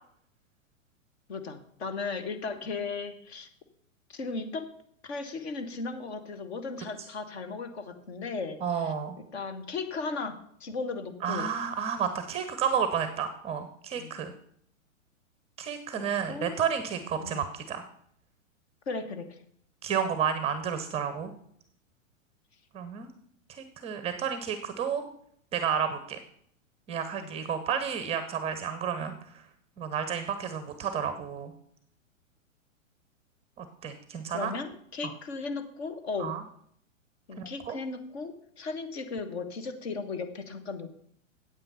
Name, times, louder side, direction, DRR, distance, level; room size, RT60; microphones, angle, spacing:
voice 1, 1.3-3.5 4.1-4.7 5.0-8.9 9.3-11.5 13.9-14.2 15.9-16.6 17.2-17.5 18.9-19.4 27.2-27.3 34.3-36.3 37.3-40.9, left 4 dB, 50° left, 8 dB, 1.5 m, -36 dB
voice 2, 8.6-9.2 11.2-14.3 15.6-17.8 19.8-21.3 22.7-23.1 23.5-25.0 25.5-26.2 26.9-29.4 29.8-31.5 33.6-34.5 35.0-35.1 36.2-36.4 37.4-37.8, right 7 dB, 15° right, 10 dB, 0.6 m, -31 dB
8.9 x 8.2 x 5.5 m, 0.66 s
figure-of-eight pair, 110°, 40 cm